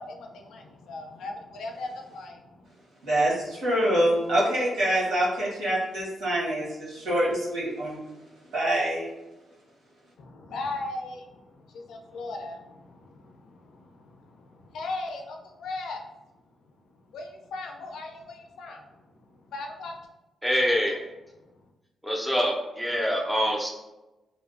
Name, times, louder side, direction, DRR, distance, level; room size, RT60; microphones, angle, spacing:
voice 1, 0.0-2.7 10.2-16.1 17.1-20.0, left 2 dB, 80° left, 3 dB, 0.3 m, -38 dB
voice 2, 3.0-8.0 8.5-9.1, right 1 dB, 90° right, -6 dB, 1.0 m, -25 dB
voice 3, 20.4-21.0 22.0-23.7, equal, ahead, -1 dB, 0.3 m, -25 dB
2.6 x 2.0 x 2.4 m, 1.0 s
wide cardioid pair, 160°, 0 cm